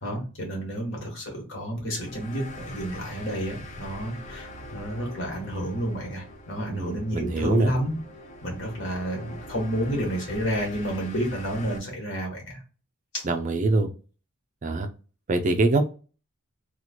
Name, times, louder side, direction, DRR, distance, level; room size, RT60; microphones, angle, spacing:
voice 1, 0.0-8.0 8.4-12.6 13.1-13.2, equal, 60° left, 0 dB, 1.4 m, -30 dB
sound 1, 1.9-11.8, left 1 dB, 35° left, 0.5 m, -43 dB
voice 2, 6.7-7.7 13.2-13.9 14.6-14.9 15.3-15.9, right 2 dB, 35° right, 7 dB, 0.4 m, -24 dB
2.9 x 2.3 x 4.2 m, 0.36 s
head